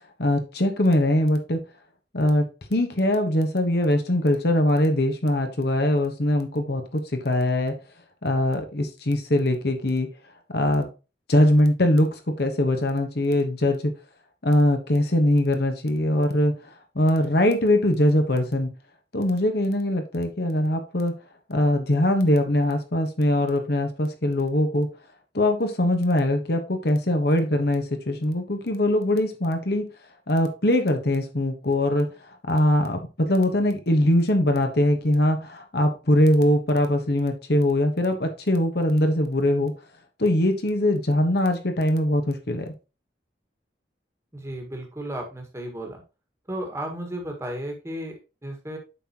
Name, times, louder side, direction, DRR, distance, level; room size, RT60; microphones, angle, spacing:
voice 1, 0.2-1.6 2.1-7.7 8.2-10.1 10.5-10.9 11.3-13.9 14.4-16.5 16.9-18.7 19.1-21.1 21.5-24.9 25.3-29.9 30.3-32.1 32.5-39.7 40.2-42.7, left 1 dB, 60° left, 5 dB, 1.3 m, -22 dB
voice 2, 44.3-46.0 46.5-48.8, right 1 dB, 15° right, 2 dB, 1.6 m, -34 dB
8.3 x 5.7 x 2.9 m, 0.30 s
head